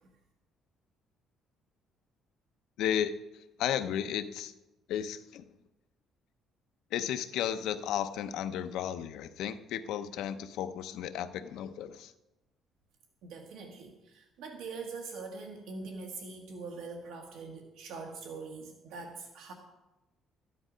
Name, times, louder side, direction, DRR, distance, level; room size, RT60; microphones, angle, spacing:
voice 1, 2.8-4.5 4.9-5.4 6.9-12.1, left 10 dB, 70° left, 10 dB, 0.7 m, -34 dB
voice 2, 13.2-19.5, right 4 dB, 70° right, 3 dB, 1.5 m, -43 dB
13.5 x 10.5 x 5.1 m, 1.0 s
cardioid pair, 175°, 0 cm